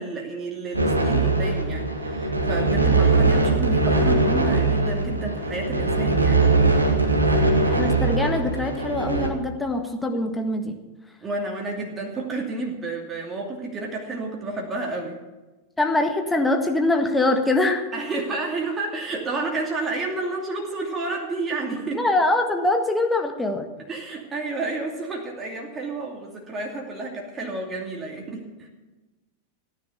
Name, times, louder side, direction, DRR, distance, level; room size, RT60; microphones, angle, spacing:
voice 1, 0.0-6.4 11.2-15.2 17.9-22.1 23.9-28.7, right 3 dB, 20° right, -1 dB, 2.6 m, -30 dB
sound 1, 0.7-9.3, right 3 dB, 80° right, 2.0 m, -21 dB
voice 2, 7.7-10.8 15.8-17.9 22.0-23.7, left 2 dB, 5° left, 4 dB, 1.6 m, -23 dB
15.5 x 10.0 x 7.0 m, 1.1 s
figure-of-eight pair, 90°, 0 cm